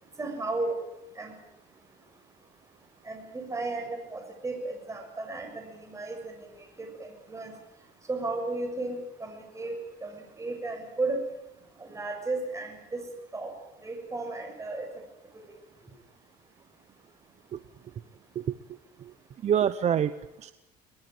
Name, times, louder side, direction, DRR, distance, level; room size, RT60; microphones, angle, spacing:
voice 1, 0.2-0.8 1.1-1.3 3.0-6.4 6.8-7.5 8.1-11.2 11.8-13.0 13.3-13.5 13.8-14.9 15.3-15.5, right 2 dB, 20° right, 4 dB, 6.8 m, -34 dB
voice 2, 19.4-20.5, right 9 dB, 45° right, 13 dB, 0.9 m, -27 dB
22.5 x 21.0 x 9.1 m, 0.88 s
cardioid pair, 125°, 16 cm